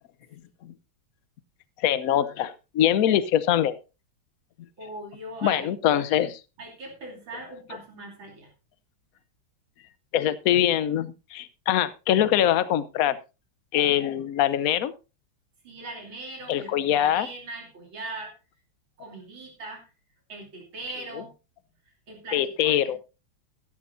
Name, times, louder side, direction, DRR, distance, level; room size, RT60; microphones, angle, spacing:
voice 1, 1.8-3.8 5.4-6.3 10.1-13.2 13.7-14.9 16.5-17.3 21.1-21.2 22.3-23.0, left 11 dB, 60° left, 15 dB, 0.9 m, -23 dB
voice 2, 4.8-6.0 6.6-8.5 15.6-18.3 19.0-19.9 20.3-21.3 22.1-23.0, right 2 dB, 70° right, 0 dB, 3.6 m, -40 dB
13.5 x 12.0 x 2.6 m, 0.28 s
omnidirectional pair, 2.2 m